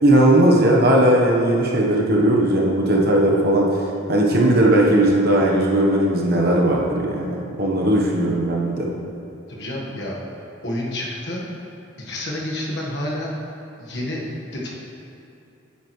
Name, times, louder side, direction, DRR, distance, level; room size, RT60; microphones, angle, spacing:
voice 1, 0.0-3.7 4.1-8.9, right 1 dB, 50° right, -2 dB, 1.1 m, -17 dB
voice 2, 9.5-10.2 10.6-11.4 12.0-13.3 13.8-14.2 14.5-14.7, left 1 dB, 55° left, -4 dB, 1.5 m, -29 dB
9.3 x 8.6 x 3.2 m, 2.8 s
head